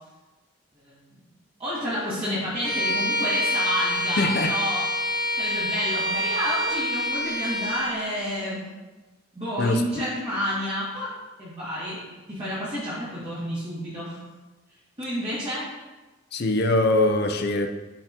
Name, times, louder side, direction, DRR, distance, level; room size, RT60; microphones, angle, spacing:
voice 1, 0.9-1.3 1.6-4.8 5.4-8.6 9.3-11.1 11.4-12.0 12.3-14.2 15.0-15.7, equal, 25° right, -11 dB, 2.1 m, -30 dB
Bowed string instrument, 2.6-8.0, left 1 dB, 55° right, 2.3 m, -26 dB
voice 2, 4.2-4.5 9.6-10.0 16.3-17.7, left 2 dB, 50° left, 5 dB, 0.5 m, -22 dB
10.5 x 4.6 x 2.9 m, 1.2 s
head